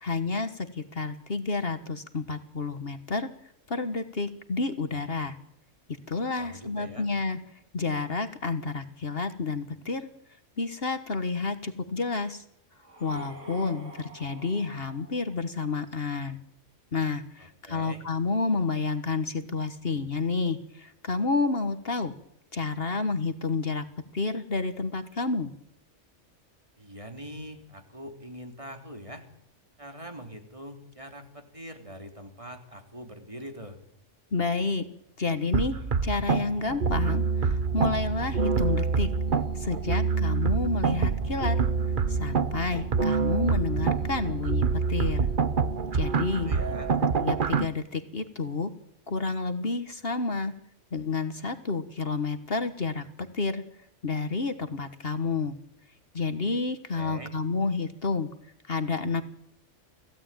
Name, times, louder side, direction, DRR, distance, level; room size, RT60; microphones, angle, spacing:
voice 1, 0.0-3.3 3.7-5.4 6.1-7.4 7.7-10.1 10.6-12.4 13.0-16.4 16.9-22.1 22.5-23.8 24.1-25.5 34.3-34.8 35.2-35.8 36.0-39.1 39.5-41.6 42.1-45.3 45.9-46.5 47.2-48.7 49.1-50.5 50.9-53.6 54.0-55.5 56.1-58.3 58.7-59.2, left 4 dB, 50° left, 10 dB, 1.6 m, -30 dB
voice 2, 6.4-7.1 17.4-18.1 26.8-29.2 29.8-33.8 46.3-46.9 56.9-57.3, equal, 25° right, 5 dB, 3.3 m, -43 dB
sound 1, 12.8-15.8, right 1 dB, 85° right, 7.3 m, -47 dB
sound 2, 35.5-47.7, right 5 dB, 45° right, 1.1 m, -26 dB
26.0 x 16.5 x 9.0 m, 0.78 s
omnidirectional pair, 1.2 m